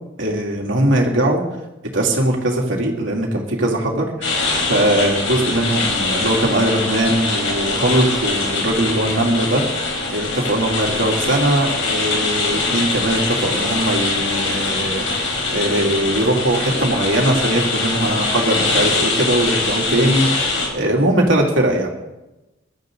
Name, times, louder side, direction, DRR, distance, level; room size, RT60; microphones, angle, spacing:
voice 1, 0.2-1.4 1.9-4.4 4.7-9.8 10.1-21.9, right 1 dB, 75° right, -1 dB, 3.2 m, -20 dB
sound 1, 4.2-20.7, left 3 dB, 90° left, 4.2 m, -22 dB
22.0 x 12.5 x 4.0 m, 1.0 s
head